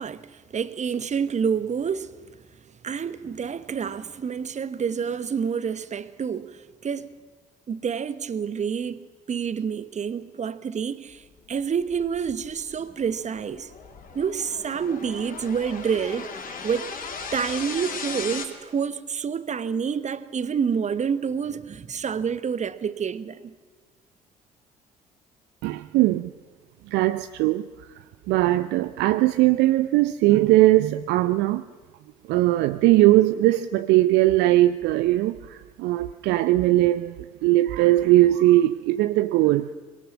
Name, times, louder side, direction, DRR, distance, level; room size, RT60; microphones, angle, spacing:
voice 1, 0.0-2.1 2.8-7.2 7.7-13.7 14.1-16.3 16.6-16.9 17.3-23.5, right 7 dB, 40° right, 1.1 m, -28 dB
sound 1, 11.5-18.4, left 5 dB, 45° left, 2.7 m, -37 dB
voice 2, 25.6-26.3 26.9-27.7 28.3-31.6 32.3-39.7, right 16 dB, 65° right, 0.6 m, -20 dB
21.5 x 18.0 x 7.3 m
figure-of-eight pair, 50°, 19 cm